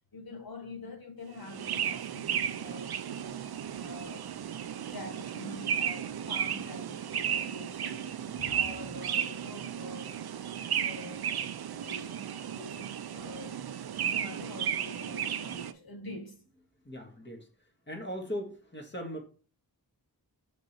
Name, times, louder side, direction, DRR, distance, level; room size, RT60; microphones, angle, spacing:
voice 1, 0.1-3.5 3.8-4.3 4.8-8.1 8.3-10.4 10.7-11.3 11.8-13.7 13.9-16.4, left 2 dB, 70° left, 1.6 m, -46 dB
sound 1, 1.4-15.7, right 9 dB, 75° right, 0.5 m, -34 dB
voice 2, 7.9-8.6 11.6-12.0 16.8-19.2, equal, 30° left, 1.7 m, -41 dB
5.3 x 5.1 x 4.3 m
wide cardioid pair, 65°, 38 cm